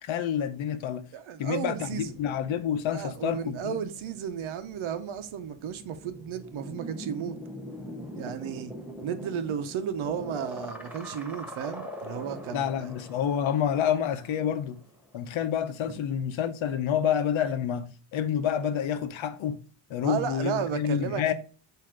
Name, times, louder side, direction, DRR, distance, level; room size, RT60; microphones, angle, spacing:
voice 1, 0.0-1.1 1.4-3.8 12.5-14.8 15.1-17.9 18.1-19.6 19.9-21.3, left 9 dB, 80° left, 0.9 m, -28 dB
voice 2, 1.1-2.1 2.9-7.4 8.2-8.7 9.0-12.9 20.0-21.3, right 8 dB, 85° right, 0.9 m, -34 dB
sound 1, 1.7-15.6 15.9-17.3, equal, 5° right, 0.8 m, -43 dB
7.7 x 2.8 x 4.9 m
wide cardioid pair, 155°, 47 cm